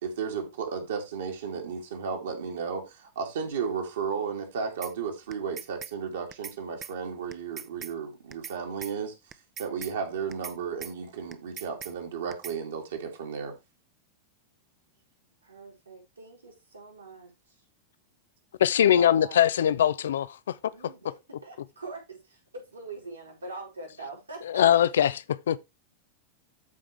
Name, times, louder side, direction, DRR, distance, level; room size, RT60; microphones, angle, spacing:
voice 1, 0.0-9.1 9.6-13.6, right 6 dB, 60° right, 2.7 m, -34 dB
sound 1, 4.8-4.9 5.3-5.9 6.3-6.6 6.8-6.9 7.3-7.9 8.3-8.6 8.8-8.9 9.3-9.9 10.3-10.6 10.8-10.9 11.3-11.9 12.3-12.6, right 8 dB, 25° right, 0.7 m, -40 dB
voice 2, 15.4-17.6 18.8-19.4 20.7-24.7, right 3 dB, 75° right, 4.9 m, -43 dB
voice 3, 18.6-20.4 24.5-25.6, left 10 dB, 60° left, 0.5 m, -22 dB
13.5 x 4.9 x 3.3 m
figure-of-eight pair, 90°, 0 cm